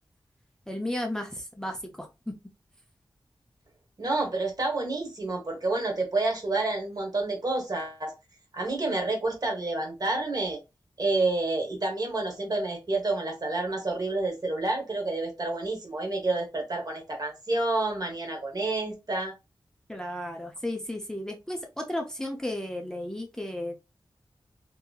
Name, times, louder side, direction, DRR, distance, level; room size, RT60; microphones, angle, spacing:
voice 1, 0.7-2.3 19.9-23.8, left 1 dB, 5° left, 0.5 m, -34 dB
voice 2, 4.0-8.1 8.5-10.6 11.0-19.3, right 2 dB, 45° right, 1.1 m, -29 dB
2.8 x 2.7 x 2.3 m
wide cardioid pair, 95°, 9 cm